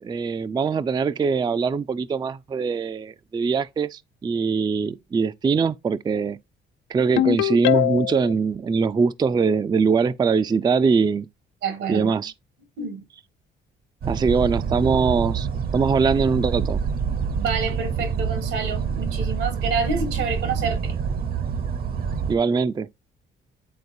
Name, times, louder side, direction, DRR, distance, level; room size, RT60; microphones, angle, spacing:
voice 1, 0.0-6.4 6.9-11.3 11.9-12.3 14.1-15.5 15.7-16.8 22.3-22.9, right 5 dB, 20° right, 0.3 m, -22 dB
Ringtone, 7.2-8.3, left 14 dB, 85° left, 0.4 m, -21 dB
voice 2, 11.6-12.1 12.8-13.0 17.4-21.0, right 4 dB, 90° right, 2.0 m, -28 dB
sound 1, 14.0-22.4, right 6 dB, 50° right, 0.7 m, -26 dB
9.4 x 3.8 x 2.6 m
cardioid pair, 90°, 20 cm